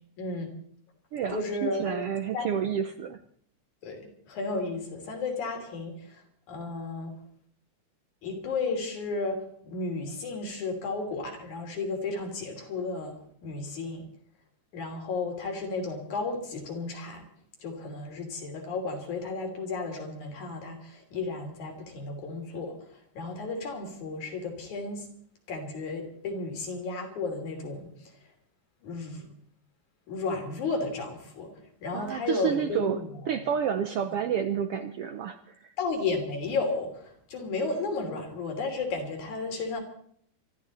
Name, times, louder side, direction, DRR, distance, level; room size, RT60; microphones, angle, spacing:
voice 1, 0.2-0.5 1.3-2.0 2.3-2.5 3.8-6.2 6.5-7.1 8.2-14.1 14.7-17.2 17.6-22.8 23.1-25.1 25.5-28.1 28.8-29.3 30.1-31.5 31.8-33.4 35.8-39.8, left 3 dB, 70° left, 3 dB, 4.5 m, -33 dB
voice 2, 1.1-3.2 31.9-33.0 33.3-35.7, right 8 dB, 75° right, 9 dB, 1.3 m, -30 dB
25.0 x 13.5 x 4.2 m, 0.62 s
omnidirectional pair, 3.5 m